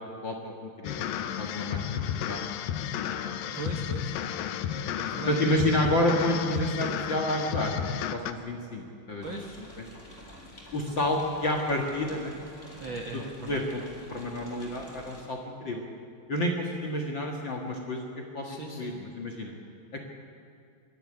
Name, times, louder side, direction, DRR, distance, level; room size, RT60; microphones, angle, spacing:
voice 1, 0.2-2.4 3.0-3.3 4.2-4.9 5.3-9.5 9.8-9.9 10.7-12.4 13.5-13.8 14.1-15.8 16.3-18.1 18.3-19.5 19.9-20.1, left 1 dB, 45° left, 0 dB, 1.7 m, -30 dB
sound 1, 0.8-8.3, left 9 dB, 75° left, 2.5 m, -32 dB
voice 2, 3.5-4.2 4.9-5.4 9.2-9.6 12.8-13.6 18.4-18.9, right 3 dB, 60° right, 2 dB, 1.3 m, -38 dB
sound 2, 9.2-15.2, left 1 dB, 15° left, 3.8 m, -48 dB
24.5 x 12.5 x 9.8 m, 2.4 s
omnidirectional pair, 4.3 m